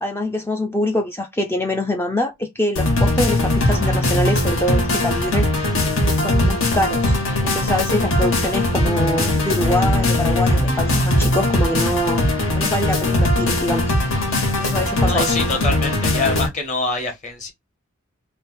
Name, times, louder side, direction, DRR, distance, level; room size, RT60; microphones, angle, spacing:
voice 1, 0.0-5.5 6.1-7.2 7.4-12.2 12.6-13.9 14.6-15.3, left 1 dB, 10° left, 0.4 m, -24 dB
sound 1, 2.8-16.5, left 1 dB, 80° left, 1.7 m, -19 dB
voice 2, 15.1-17.5, left 3 dB, 35° left, 1.3 m, -25 dB
3.2 x 2.8 x 4.4 m
head